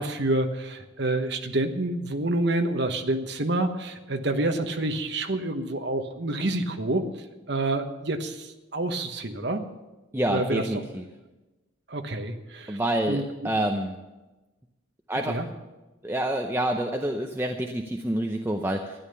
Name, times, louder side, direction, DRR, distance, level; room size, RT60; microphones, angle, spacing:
voice 1, 0.0-7.0 7.5-9.6 10.3-10.7 11.9-12.8 13.1-13.5 15.3-15.5, right 2 dB, 55° right, 6 dB, 1.1 m, -28 dB
voice 2, 10.1-11.0 12.7-14.0 15.1-15.4 16.0-19.0, right 1 dB, 10° right, 3 dB, 0.6 m, -27 dB
13.0 x 10.5 x 6.8 m, 1.1 s
head